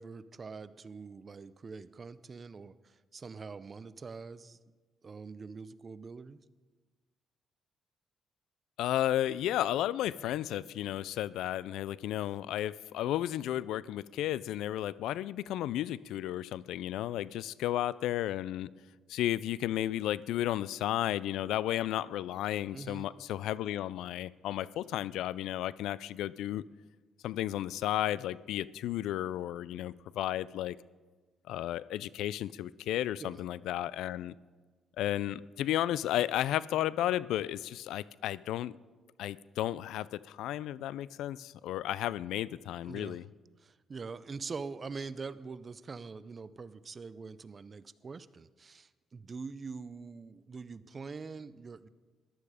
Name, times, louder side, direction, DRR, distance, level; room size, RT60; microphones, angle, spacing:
voice 1, 0.0-4.6 5.0-6.4 22.7-23.0 33.2-33.4 42.8-43.2 43.6-51.9, right 4 dB, 35° right, 16 dB, 0.5 m, -44 dB
voice 2, 8.8-18.7 19.1-26.6 27.2-30.8 31.5-34.3 35.0-38.8 39.2-43.2, left 13 dB, 85° left, 20 dB, 0.3 m, -33 dB
14.0 x 11.5 x 4.9 m, 1.4 s
cardioid pair, 90°, 0 cm